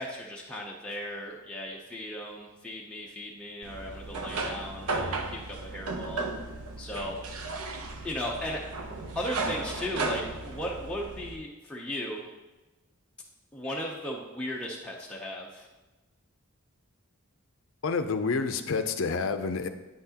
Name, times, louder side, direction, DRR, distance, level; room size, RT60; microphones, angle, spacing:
voice 1, 0.0-6.3 6.8-7.2 8.0-8.6 9.1-12.2 13.5-15.7, left 1 dB, 5° left, -4 dB, 0.6 m, -36 dB
sound 1, 3.6-11.4, right 3 dB, 85° right, 0.7 m, -35 dB
voice 2, 17.8-19.7, left 4 dB, 60° left, 8 dB, 0.5 m, -28 dB
8.8 x 5.9 x 2.8 m, 1.1 s
head